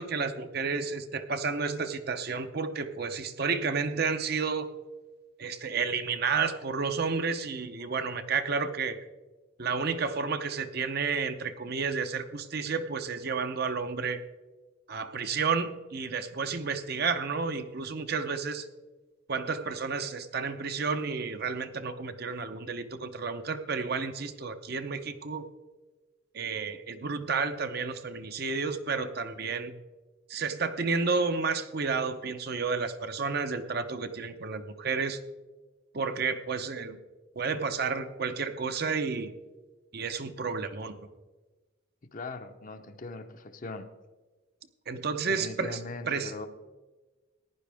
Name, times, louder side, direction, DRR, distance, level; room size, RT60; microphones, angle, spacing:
voice 1, 0.0-4.7 5.4-9.0 9.6-14.2 14.9-18.7 19.3-25.5 26.3-29.7 30.3-35.2 35.9-37.0 37.4-39.3 39.9-40.9 44.9-45.8 46.1-46.3, right 5 dB, 50° right, 8 dB, 0.7 m, -31 dB
voice 2, 42.1-43.9 45.3-46.5, left 3 dB, 40° left, 8 dB, 0.7 m, -40 dB
15.0 x 10.5 x 3.5 m, 1.2 s
head